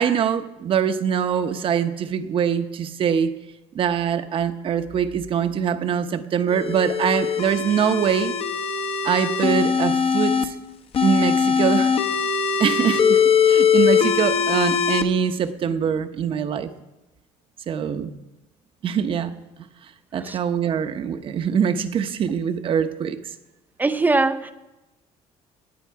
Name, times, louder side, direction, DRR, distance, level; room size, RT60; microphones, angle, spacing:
voice 1, 0.0-3.3 3.7-8.3 9.0-10.6 11.0-11.9 12.6-16.7 17.7-18.2 18.8-19.3 20.1-23.3, right 8 dB, 45° right, 10 dB, 0.9 m, -23 dB
sound 1, 6.5-10.4 10.9-15.0, left 6 dB, 50° left, 1.0 m, -21 dB
voice 2, 23.8-24.5, right 3 dB, 15° right, 10 dB, 0.5 m, -21 dB
17.5 x 9.6 x 4.7 m, 1.0 s
cardioid pair, 135°, 13 cm